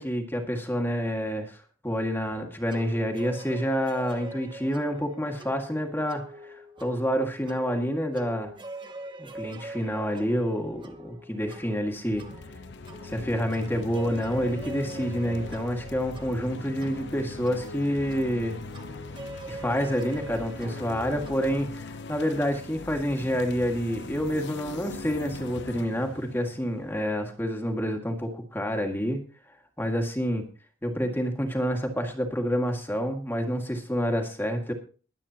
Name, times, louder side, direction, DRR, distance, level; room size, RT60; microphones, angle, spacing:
voice 1, 0.0-8.5 9.2-12.3 13.0-18.6 19.5-29.2 29.8-30.5 30.8-34.7, equal, 10° left, 3 dB, 1.9 m, -28 dB
sound 1, 2.7-21.5, right 2 dB, 20° right, 1.3 m, -43 dB
sound 2, 12.1-27.5, left 3 dB, 55° left, 0.8 m, -41 dB
22.0 x 8.9 x 2.9 m, 0.37 s
head